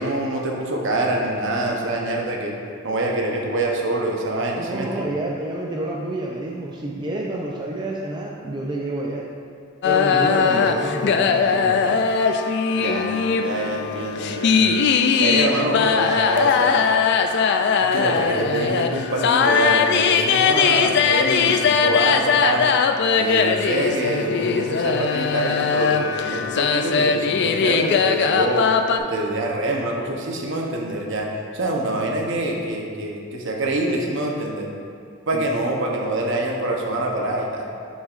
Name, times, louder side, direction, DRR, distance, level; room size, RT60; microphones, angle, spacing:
voice 1, 0.0-2.6 2.8-4.9 12.7-13.1 13.4-14.8 15.2-16.8 17.8-22.7 23.1-28.6 29.0-31.3 31.5-34.7 35.3-37.7, right 2 dB, 60° right, 0 dB, 0.8 m, -25 dB
voice 2, 4.6-9.3 9.8-12.0 35.3-35.5, right 1 dB, 20° right, -3 dB, 0.4 m, -29 dB
sound 1, 9.8-29.0, left 6 dB, 55° left, 0.3 m, -20 dB
6.7 x 6.3 x 2.5 m, 2.3 s
head